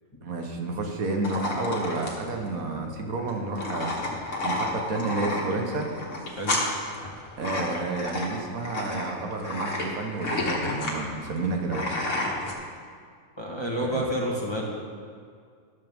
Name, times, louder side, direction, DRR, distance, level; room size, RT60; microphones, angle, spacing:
voice 1, 0.2-3.9 4.4-5.9 7.4-11.9 13.8-14.0, right 3 dB, 75° right, 3 dB, 1.6 m, -30 dB
sound 1, 1.2-12.5, left 2 dB, 60° left, 1.9 m, -31 dB
voice 2, 13.4-14.7, equal, 20° left, -3 dB, 1.6 m, -29 dB
13.0 x 11.5 x 3.6 m, 2.1 s
omnidirectional pair, 1.5 m